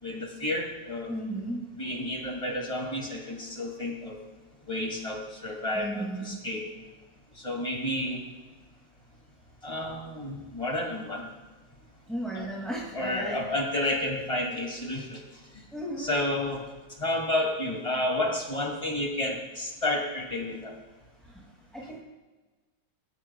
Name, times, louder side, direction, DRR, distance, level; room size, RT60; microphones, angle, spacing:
voice 1, 0.0-1.2 1.7-4.2 4.7-6.6 7.4-8.2 9.6-11.2 12.4-12.5 12.9-15.2 16.0-16.6 17.0-20.7, left 1 dB, 20° left, 0 dB, 2.5 m, -31 dB
voice 2, 1.1-1.6 5.7-6.3 12.1-13.4 15.7-16.2 21.7-22.0, right 1 dB, ahead, -4 dB, 2.2 m, -34 dB
23.0 x 13.0 x 2.3 m, 1.2 s
omnidirectional pair, 1.8 m